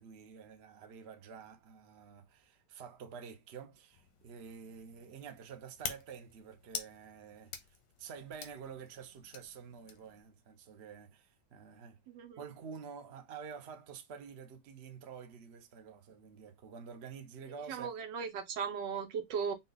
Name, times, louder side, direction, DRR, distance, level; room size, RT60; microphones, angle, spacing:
voice 1, 0.0-12.0 12.4-17.9, right 6 dB, 45° right, 0.9 m, -49 dB
sound 1, 3.9-10.2, left 7 dB, 85° left, 1.6 m, -48 dB
voice 2, 12.1-12.4 17.7-19.5, right 6 dB, 80° right, 1.5 m, -37 dB
5.7 x 2.3 x 3.9 m
omnidirectional pair, 1.9 m